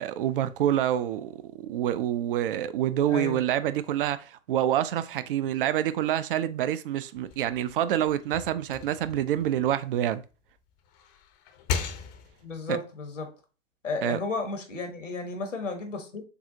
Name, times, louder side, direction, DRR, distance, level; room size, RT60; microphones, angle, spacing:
voice 1, 0.0-10.2 12.7-12.8 14.0-14.2, right 11 dB, 50° right, 0.5 m, -27 dB
voice 2, 3.1-3.4 12.4-13.3 13.8-16.2, left 3 dB, 80° left, 1.3 m, -33 dB
sound 1, 7.1-10.3 10.8-12.6, left 6 dB, 35° left, 0.6 m, -37 dB
6.6 x 2.4 x 2.7 m
figure-of-eight pair, 95°, 37 cm